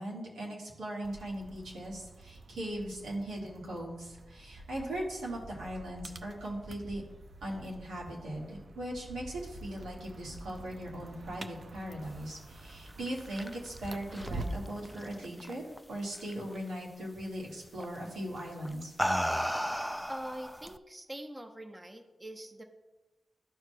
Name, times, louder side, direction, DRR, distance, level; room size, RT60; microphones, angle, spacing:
voice 1, 0.0-7.0 7.4-15.6 15.9-18.9, right 1 dB, 85° right, -4 dB, 1.7 m, -39 dB
sound 1, 1.0-14.8, right 2 dB, 60° right, 0.6 m, -47 dB
sound 2, 12.9-15.8 16.1-16.6 17.8-18.0 18.7-20.8, equal, ahead, 0.3 m, -34 dB
voice 2, 20.1-22.6, equal, 25° right, 4 dB, 0.8 m, -43 dB
12.5 x 4.5 x 2.2 m, 1.1 s
supercardioid pair, 40°, 0 cm